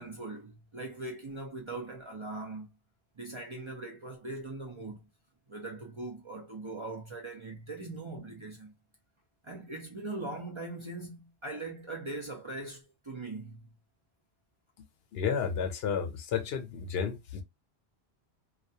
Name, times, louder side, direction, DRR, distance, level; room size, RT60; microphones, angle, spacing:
voice 1, 0.0-2.8 3.2-5.1 5.5-8.7 9.4-13.7, right 2 dB, 40° right, 0.4 m, -41 dB
voice 2, 15.1-17.4, left 7 dB, 75° left, 0.8 m, -32 dB
2.3 x 2.2 x 2.7 m
omnidirectional pair, 1.1 m